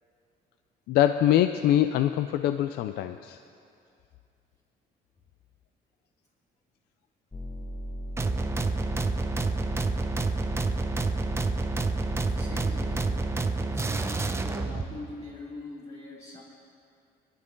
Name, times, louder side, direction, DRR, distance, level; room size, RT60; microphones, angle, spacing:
voice 1, 0.9-3.4, left 12 dB, 75° left, 10 dB, 0.4 m, -23 dB
sound 1, 7.3-13.4, equal, 10° left, 1.3 m, -36 dB
sound 2, 8.2-14.9, right 3 dB, 15° right, 0.7 m, -29 dB
voice 2, 12.3-16.4, left 2 dB, 40° left, -7 dB, 2.4 m, -43 dB
20.0 x 12.0 x 3.8 m, 2.5 s
cardioid pair, 110°, 17 cm